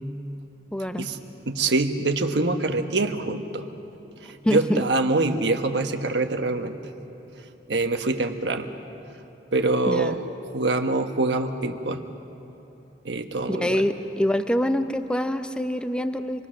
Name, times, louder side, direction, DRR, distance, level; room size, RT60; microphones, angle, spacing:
voice 1, 0.7-1.1 4.4-4.8 9.9-10.2 13.5-16.5, equal, 5° left, 9 dB, 0.7 m, -25 dB
voice 2, 1.5-3.7 4.2-6.8 7.7-8.7 9.5-10.2 10.5-12.0 13.0-13.8, right 2 dB, 80° right, 6 dB, 1.3 m, -24 dB
26.5 x 21.0 x 6.4 m, 2.9 s
head